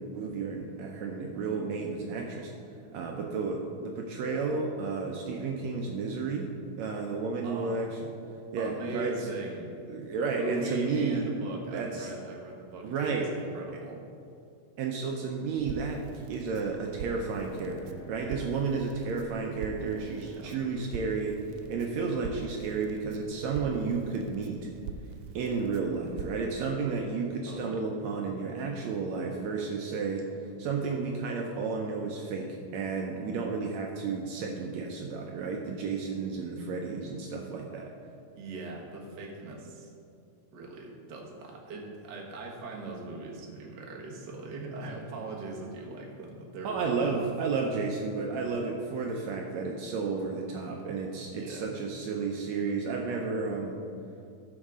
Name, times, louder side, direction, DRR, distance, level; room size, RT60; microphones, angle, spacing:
voice 1, 0.0-2.5 2.9-6.5 6.8-7.9 8.5-9.2 9.9-11.2 11.7-12.1 12.8-13.3 14.8-21.4 21.7-24.7 25.4-30.3 30.6-37.9 46.6-53.8, right 4 dB, 75° right, 1 dB, 1.9 m, -32 dB
voice 2, 7.4-7.8 8.5-9.7 10.3-14.0 20.3-20.5 27.5-27.8 38.4-39.9 40.5-47.6 51.3-51.7, right 2 dB, 45° right, -2 dB, 1.6 m, -40 dB
Crackle, 15.6-26.5, right 6 dB, 90° right, 2.1 m, -44 dB
Bowed string instrument, 17.1-22.2, right 1 dB, 75° left, 2.4 m, -51 dB
14.5 x 6.4 x 3.7 m, 2.5 s
omnidirectional pair, 3.4 m